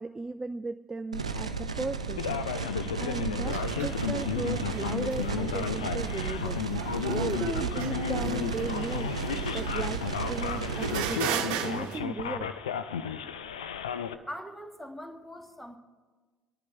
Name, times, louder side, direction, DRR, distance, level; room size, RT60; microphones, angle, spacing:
voice 1, 0.0-2.7 3.0-12.5, right 3 dB, 15° right, 11 dB, 0.4 m, -36 dB
sound 1, 1.1-11.1, right 4 dB, 85° right, 0.5 m, -34 dB
Male speech man speaking, 2.2-14.1, left 8 dB, 75° left, 0.6 m, -34 dB
sound 2, 3.4-12.0, right 8 dB, 60° right, 1.1 m, -37 dB
voice 2, 14.3-15.8, equal, 5° left, 6 dB, 1.6 m, -42 dB
25.5 x 10.5 x 3.4 m, 1.4 s
figure-of-eight pair, 60°, 3 cm